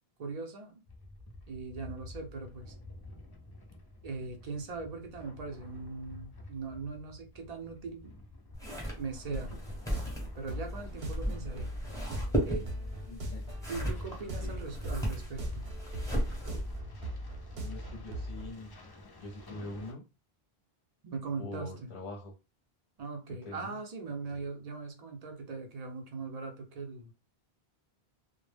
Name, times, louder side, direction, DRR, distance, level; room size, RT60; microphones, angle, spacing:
voice 1, 0.2-0.7 1.5-2.7 4.0-8.1 9.0-9.6 10.4-11.7 12.4-12.7 13.7-15.7 21.0-21.9 23.0-27.1, right 4 dB, 50° right, 0.6 m, -40 dB
sound 1, 0.9-19.9, left 2 dB, 40° left, 0.3 m, -50 dB
sound 2, 8.5-16.8, equal, 5° left, 0.7 m, -36 dB
sound 3, 9.7-18.5, equal, 70° right, 0.9 m, -40 dB
voice 2, 13.1-13.5 14.2-14.7 17.6-18.7 19.2-20.0 21.4-22.3 23.3-23.8 24.2-24.5, left 2 dB, 55° left, 0.7 m, -44 dB
2.1 x 2.0 x 3.2 m
omnidirectional pair, 1.0 m